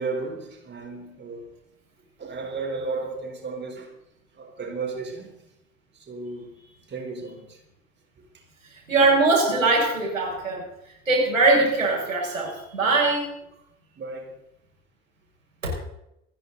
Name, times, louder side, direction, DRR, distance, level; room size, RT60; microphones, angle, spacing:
voice 1, 0.0-1.5 2.2-3.9 4.3-5.3 5.9-6.6 6.9-7.6 8.2-8.4 14.0-14.3, right 4 dB, 25° right, 4.3 m, -34 dB
voice 2, 8.9-10.6 11.1-13.3 15.6-15.7, right 3 dB, 80° right, 6.0 m, -21 dB
28.5 x 10.0 x 4.1 m
figure-of-eight pair, 65°, 39 cm